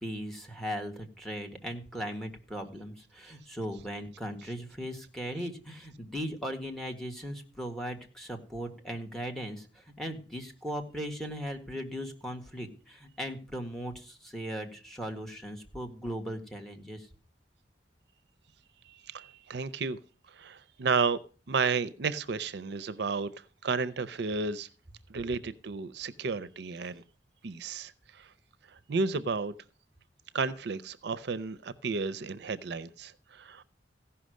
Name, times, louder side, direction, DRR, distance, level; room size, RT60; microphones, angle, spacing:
voice 1, 0.0-17.1, equal, ahead, 3 dB, 1.7 m, -38 dB
voice 2, 18.9-20.0 20.3-21.2 21.5-24.7 25.1-27.0 27.4-28.3 28.7-29.5 30.3-33.6, right 4 dB, 65° right, 16 dB, 0.5 m, -32 dB
15.5 x 5.7 x 6.4 m, 0.39 s
head